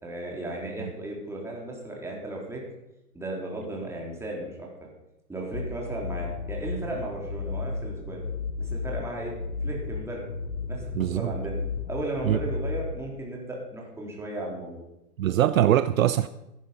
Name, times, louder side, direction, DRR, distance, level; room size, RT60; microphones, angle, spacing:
voice 1, 0.0-2.6 3.1-4.7 5.3-8.2 8.6-9.3 9.6-10.3 10.7-11.6 11.8-14.8, right 2 dB, 5° right, -2 dB, 3.6 m, -35 dB
sound 1, 5.5-12.9, left 4 dB, 70° left, 2.1 m, -33 dB
voice 2, 10.9-11.3 12.2-12.4 15.2-16.3, right 12 dB, 55° right, 14 dB, 0.7 m, -22 dB
15.0 x 10.0 x 5.6 m, 0.92 s
hypercardioid pair, 135°, 48 cm